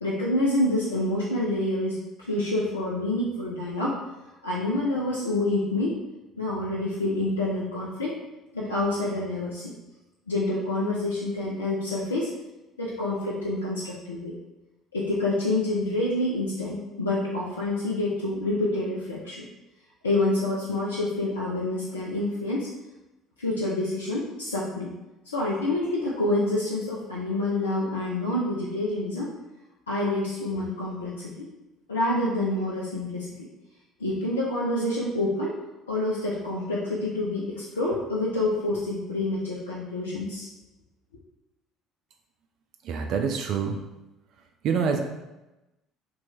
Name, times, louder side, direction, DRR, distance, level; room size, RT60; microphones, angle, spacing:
voice 1, 0.0-2.0 2.3-4.0 4.4-6.0 6.4-8.2 8.5-9.6 10.3-12.3 12.8-14.3 14.9-19.4 20.0-22.7 23.4-24.9 25.3-29.3 29.9-31.5 31.9-33.5 34.0-35.5 35.9-40.5, left 2 dB, 80° left, -6 dB, 0.4 m, -27 dB
voice 2, 42.8-43.8 44.6-45.0, right 6 dB, 55° right, 4 dB, 0.3 m, -26 dB
2.9 x 2.3 x 4.0 m, 1.0 s
figure-of-eight pair, 55°, 0 cm